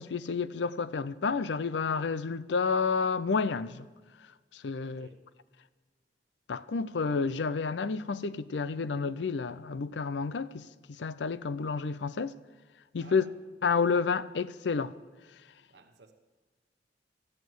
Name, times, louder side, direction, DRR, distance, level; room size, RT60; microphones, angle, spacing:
voice 1, 0.0-3.9 4.5-5.1 6.5-12.4 12.9-13.2 13.6-14.9, left 5 dB, 90° left, 0.5 m, -30 dB
voice 2, 4.8-5.2 13.0-13.3 15.7-16.1, right 2 dB, 70° right, 1.0 m, -54 dB
13.0 x 9.3 x 7.8 m
head